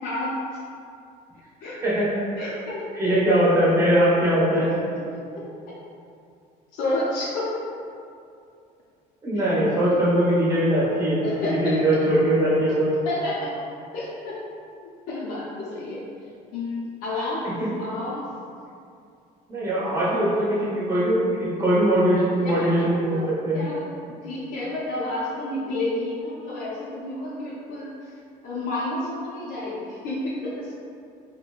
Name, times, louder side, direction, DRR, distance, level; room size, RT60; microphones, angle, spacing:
voice 1, 0.0-0.6 1.6-1.8 2.4-3.1 4.7-4.8 5.4-5.5 6.7-7.6 9.3-9.4 11.2-12.1 13.0-13.6 13.9-14.4 14.8-16.0 16.5-17.5 17.8-18.3 22.4-23.3 23.5-23.8 24.2-30.7, left 2 dB, 65° left, -7 dB, 0.5 m, -30 dB
voice 2, 2.9-4.6 9.2-11.3 11.6-12.9 17.2-17.3 17.6-17.7 19.5-23.2 23.5-23.6, right 1 dB, 20° right, -9 dB, 1.1 m, -21 dB
3.6 x 2.1 x 2.3 m, 2.4 s
cardioid pair, 130°, 16 cm